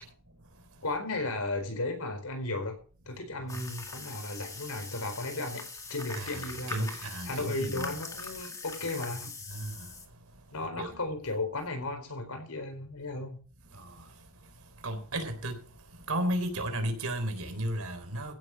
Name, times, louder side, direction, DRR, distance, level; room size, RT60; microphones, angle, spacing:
voice 1, 0.8-2.8 3.1-5.6 5.9-9.3 10.5-13.4, left 2 dB, 90° left, 4.4 m, -35 dB
sound 1, 3.5-10.1, left 3 dB, 15° left, 2.0 m, -42 dB
voice 2, 6.2-8.0 9.5-9.7 10.8-10.9 14.8-15.6 16.1-18.3, right 1 dB, 80° right, 3.7 m, -33 dB
15.5 x 7.7 x 6.0 m
head